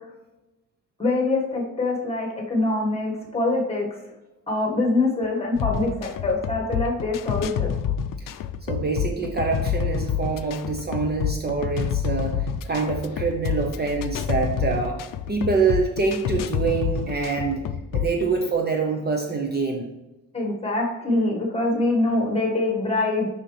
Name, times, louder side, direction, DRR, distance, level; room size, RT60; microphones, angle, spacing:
voice 1, 1.0-3.9 4.5-7.7 20.3-23.3, left 2 dB, 20° left, -1 dB, 1.6 m, -24 dB
sound 1, 5.5-18.2, left 8 dB, 90° left, 0.5 m, -28 dB
voice 2, 8.7-15.0 15.3-17.6 17.9-19.9, right 4 dB, 30° right, 2 dB, 0.6 m, -25 dB
6.4 x 5.7 x 3.3 m, 1.0 s
wide cardioid pair, 170°, 32 cm